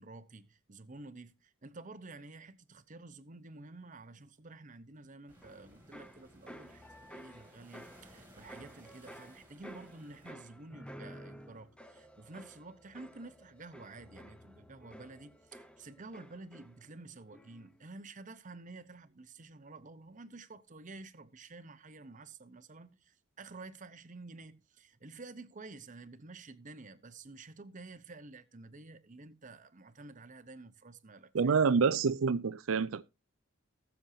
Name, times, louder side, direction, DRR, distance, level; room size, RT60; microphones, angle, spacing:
voice 1, 0.0-31.5, right 3 dB, 40° right, 0.9 m, -51 dB
sound 1, 5.3-10.3, right 1 dB, 10° right, 2.6 m, -60 dB
sound 2, 5.4-17.0 17.3-17.8, equal, 5° left, 0.7 m, -53 dB
voice 2, 31.3-33.0, right 5 dB, 85° right, 0.5 m, -27 dB
19.0 x 7.2 x 2.7 m
head